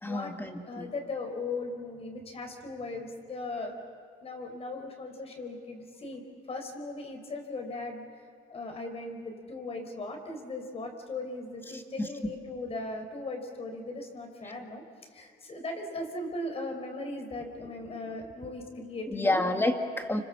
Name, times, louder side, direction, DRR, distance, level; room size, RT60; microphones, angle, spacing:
voice 1, 0.0-0.9 11.7-12.1 19.1-20.2, left 2 dB, 15° left, 5 dB, 2.3 m, -29 dB
voice 2, 0.6-3.8 4.2-6.2 6.5-8.0 8.5-14.8 15.1-19.4 20.1-20.2, left 2 dB, 35° left, 4 dB, 4.8 m, -38 dB
30.0 x 26.5 x 7.4 m, 2.3 s
cardioid pair, 110°, 17 cm